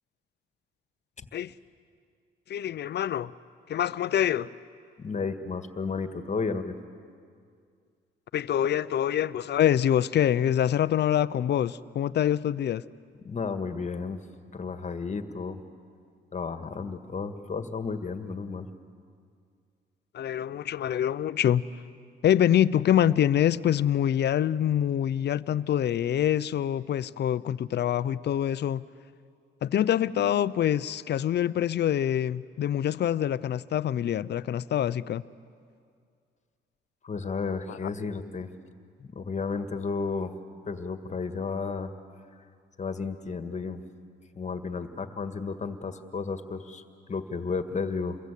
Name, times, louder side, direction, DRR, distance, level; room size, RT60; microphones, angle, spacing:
voice 1, 2.5-3.3 3.7-4.5 8.3-12.8 20.1-21.6 22.2-28.8 29.6-35.2 37.7-37.8, left 10 dB, 60° left, 16 dB, 0.7 m, -25 dB
voice 2, 5.0-6.7 13.2-14.2 14.5-15.6 16.3-18.7 37.0-38.5 39.0-40.3 40.7-41.9 42.8-43.8 44.4-48.2, left 4 dB, 35° left, 8 dB, 1.8 m, -33 dB
28.5 x 22.5 x 8.4 m, 2.2 s
cardioid pair, 90°, 20 cm